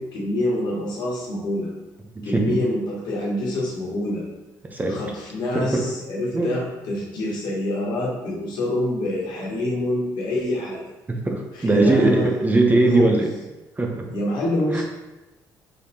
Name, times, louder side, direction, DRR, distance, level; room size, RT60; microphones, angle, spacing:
voice 1, 0.0-1.7 2.2-4.2 4.9-10.8 11.5-12.3 12.9-13.1 14.1-14.8, left 1 dB, 75° left, -3 dB, 1.3 m, -26 dB
voice 2, 2.2-2.6 4.7-5.0 5.5-5.8 6.3-6.5 11.1-13.3 13.8-14.0 14.7-14.8, right 2 dB, 20° right, 2 dB, 0.8 m, -20 dB
5.1 x 3.4 x 2.8 m, 1.1 s
cardioid pair, 85°, 8 cm